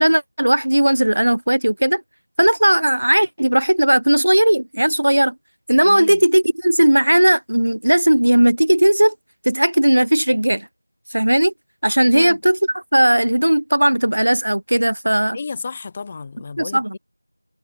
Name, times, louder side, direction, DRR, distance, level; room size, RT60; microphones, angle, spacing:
voice 1, 0.0-2.0 2.4-5.3 5.7-9.1 9.4-10.7 11.1-11.5 11.8-15.4 16.6-16.9, right 1 dB, 55° right, 1.2 m, -16 dB
voice 2, 5.8-6.2 12.1-12.4 15.3-17.0, left 4 dB, 10° left, 0.5 m, -32 dB
figure-of-eight pair, 175°, 0 cm